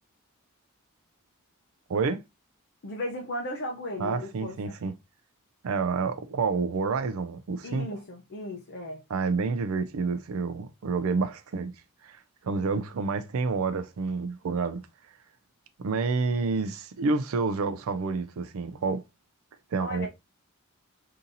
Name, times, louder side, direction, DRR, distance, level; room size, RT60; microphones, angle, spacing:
voice 1, 1.9-2.2 4.0-4.9 5.6-7.9 9.1-11.7 12.0-14.8 15.8-19.0 19.7-20.1, right 4 dB, 65° right, 0.4 m, -29 dB
voice 2, 2.8-4.8 7.6-9.0 19.8-20.1, left 1 dB, 55° left, 0.7 m, -36 dB
3.8 x 2.8 x 2.6 m
head